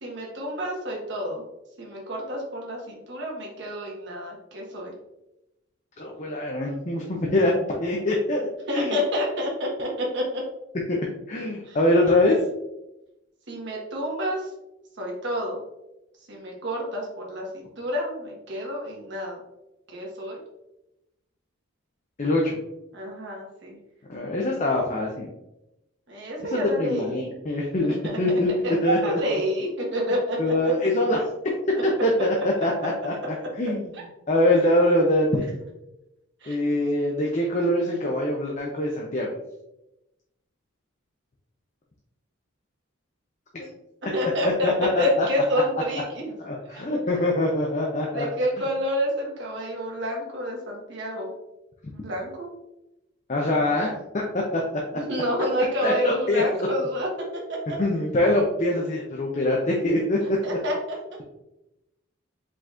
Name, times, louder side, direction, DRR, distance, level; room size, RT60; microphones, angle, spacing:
voice 1, 0.0-1.4 1.8-4.9 8.7-10.4 11.7-11.8 13.5-14.5 15.0-15.6 16.3-17.5 17.8-19.4 19.9-20.4 22.9-23.8 26.1-27.3 27.8-28.1 28.6-30.5 36.4-36.6 44.1-44.7 45.0-46.2 46.7-46.8 48.1-51.3 51.9-52.5 53.7-53.9 55.0-57.8 60.4-60.7, equal, 55° right, -2 dB, 1.3 m, -28 dB
voice 2, 6.0-7.5 7.8-8.5 8.7-9.0 10.9-11.0 11.3-12.4 22.2-22.6 24.1-25.3 26.4-28.5 28.8-29.4 30.4-31.3 31.8-33.8 34.3-35.5 36.5-39.3 43.6-43.7 44.4-45.3 46.4-48.3 53.3-54.6 55.8-56.5 57.8-60.4, left 1 dB, 35° left, -1 dB, 0.5 m, -24 dB
4.9 x 3.8 x 2.5 m, 0.92 s
head